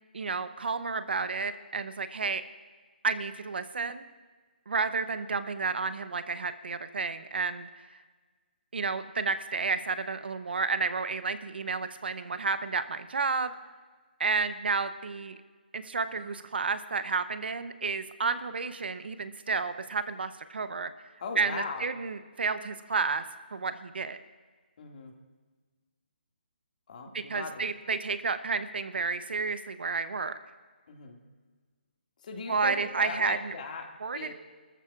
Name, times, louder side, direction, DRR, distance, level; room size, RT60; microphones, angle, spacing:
voice 1, 0.1-2.4 3.0-4.0 4.7-7.7 8.7-13.5 14.2-15.4 15.7-20.9 21.4-23.2 23.5-24.2 27.1-30.4 32.5-33.5 34.0-34.3, right 4 dB, 70° right, 11 dB, 0.9 m, -31 dB
voice 2, 21.2-21.9 24.8-25.1 26.9-27.6 30.9-31.2 32.2-34.3, left 4 dB, 50° left, 2 dB, 2.2 m, -38 dB
29.5 x 14.0 x 2.5 m, 1.4 s
hypercardioid pair, 155°, 6 cm